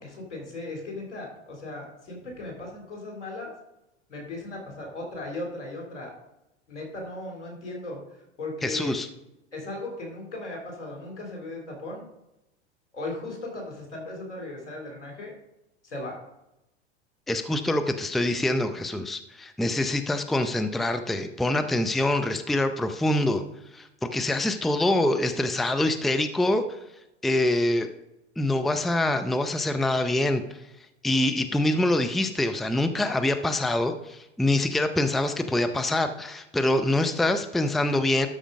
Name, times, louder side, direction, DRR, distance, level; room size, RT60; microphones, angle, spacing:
voice 1, 0.0-3.5 4.1-6.1 6.7-8.9 9.5-12.0 12.9-15.3 15.8-16.2, left 2 dB, 85° left, 0 dB, 3.7 m, -37 dB
voice 2, 8.6-9.1 17.3-23.4 23.7-26.8 27.2-27.9 28.4-30.6 31.0-38.3, left 1 dB, ahead, 8 dB, 0.5 m, -25 dB
12.5 x 5.0 x 5.2 m, 0.91 s
hypercardioid pair, 95°, 35 cm